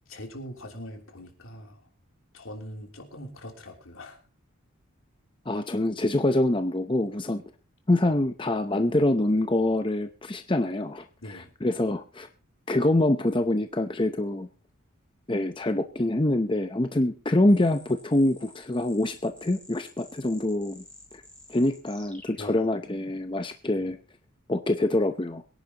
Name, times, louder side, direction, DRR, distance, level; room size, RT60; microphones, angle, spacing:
voice 1, 0.1-1.9 2.3-4.2 11.2-11.5 22.4-22.7 23.7-23.9, equal, 80° left, 3 dB, 3.2 m, -42 dB
voice 2, 5.5-7.4 7.9-12.3 12.7-14.5 15.3-20.8 21.1-21.2 21.5-24.0 24.5-25.4, left 1 dB, 25° left, 7 dB, 0.7 m, -25 dB
sound 1, 17.5-23.3, left 1 dB, 5° left, 3.4 m, -50 dB
23.5 x 10.5 x 2.9 m, 0.33 s
head